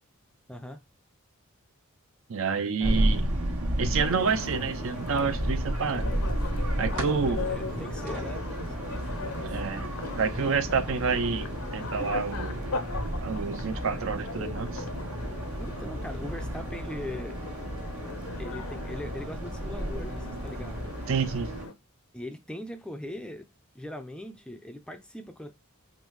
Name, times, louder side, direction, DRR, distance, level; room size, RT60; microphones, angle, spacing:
voice 1, 0.5-0.8 2.8-3.1 6.9-8.7 8.9-9.6 15.6-17.4 18.4-20.9 22.1-23.5 23.7-25.5, left 1 dB, 5° left, 0.4 m, -41 dB
voice 2, 2.3-3.3 3.8-6.1 6.8-7.5 9.4-9.9 10.2-12.6 13.2-14.8 21.1-21.5, right 5 dB, 60° right, 0.5 m, -28 dB
sound 1, 2.8-21.7, right 1 dB, 85° right, 1.3 m, -32 dB
sound 2, 3.9-21.7, left 3 dB, 70° left, 0.7 m, -39 dB
5.2 x 2.0 x 3.1 m
head